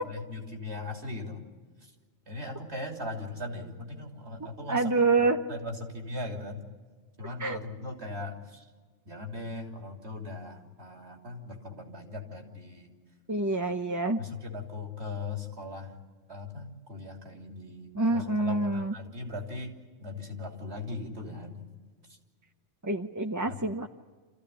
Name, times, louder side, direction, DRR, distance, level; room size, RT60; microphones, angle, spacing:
voice 1, 0.1-1.4 1.8-1.9 2.3-6.6 7.2-8.6 9.0-12.9 14.2-15.9 16.3-19.7 20.0-21.6 23.5-23.6, left 2 dB, 60° right, 2 dB, 3.4 m, -39 dB
voice 2, 4.7-5.4 7.4-7.6 13.3-14.2 17.9-18.9 22.8-23.9, right 3 dB, 20° right, 4 dB, 0.6 m, -27 dB
27.5 x 15.0 x 10.0 m, 1.5 s
omnidirectional pair, 1.3 m